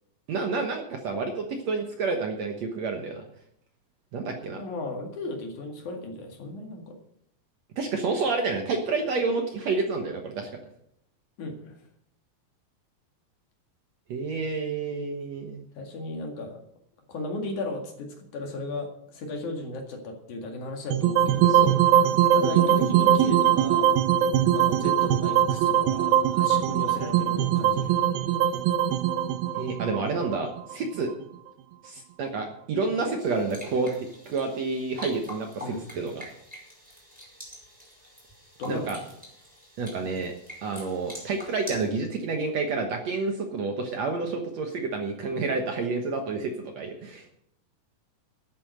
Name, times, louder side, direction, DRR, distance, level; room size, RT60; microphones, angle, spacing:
voice 1, 0.3-3.2 4.1-4.6 7.8-10.5 14.1-15.7 21.4-21.8 29.6-31.1 31.8-33.9 34.3-36.2 38.7-39.0 39.8-40.3 40.6-47.3, right 4 dB, 60° right, 3 dB, 2.0 m, -29 dB
voice 2, 4.5-7.0 11.4-11.8 15.8-16.6 17.1-21.5 22.3-24.0 24.5-28.1 35.6-35.8 38.6-39.2, left 2 dB, 60° left, 2 dB, 3.3 m, -35 dB
sound 1, 20.9-31.1, right 10 dB, 85° right, 2.7 m, -22 dB
sound 2, 33.2-41.9, equal, ahead, 5.0 m, -45 dB
12.0 x 8.5 x 7.8 m, 0.73 s
omnidirectional pair, 4.2 m